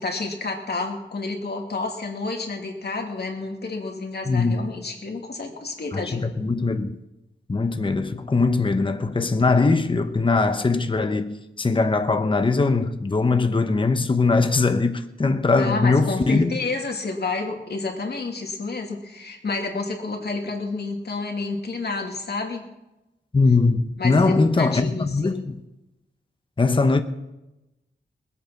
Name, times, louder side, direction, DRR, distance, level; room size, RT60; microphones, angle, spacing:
voice 1, 0.0-6.2 15.6-22.7 24.0-25.4, left 3 dB, 60° left, 2.6 m, -30 dB
voice 2, 4.3-4.6 5.9-7.0 7.5-16.6 23.3-25.6 26.6-27.0, left 3 dB, 25° left, 0.9 m, -21 dB
21.0 x 8.4 x 6.0 m
wide cardioid pair, 120°, 19 cm